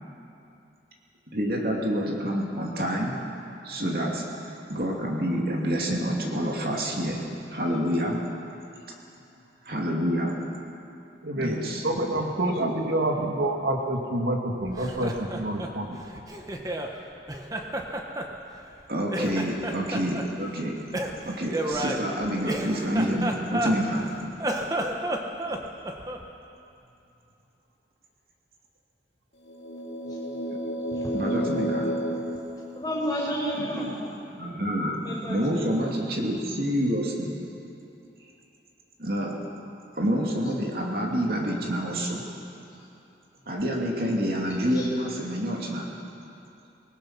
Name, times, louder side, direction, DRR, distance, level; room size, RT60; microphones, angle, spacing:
voice 1, 1.3-3.1 3.6-4.2 4.7-7.2 7.5-8.2 9.6-10.3 11.4-11.8 12.6-12.7 18.9-20.8 21.2-24.2 30.5-30.6 31.1-31.9 33.6-33.8 34.4-37.8 39.0-39.4 39.9-42.2 43.5-45.9, equal, 55° right, -1 dB, 2.8 m, -28 dB
voice 2, 11.8-16.0, right 1 dB, 85° right, 2 dB, 2.1 m, -27 dB
Laughter, 14.6-16.9 17.3-18.8 19.1-20.3 20.9-24.0 24.3-26.3, right 1 dB, 20° right, 1.3 m, -31 dB
sound 1, 29.5-33.3, equal, 85° left, 2.3 m, -31 dB
voice 3, 32.7-34.2 35.0-35.9 44.7-44.9, equal, 20° left, -4 dB, 5.3 m, -32 dB
25.5 x 20.0 x 5.9 m, 2.7 s
head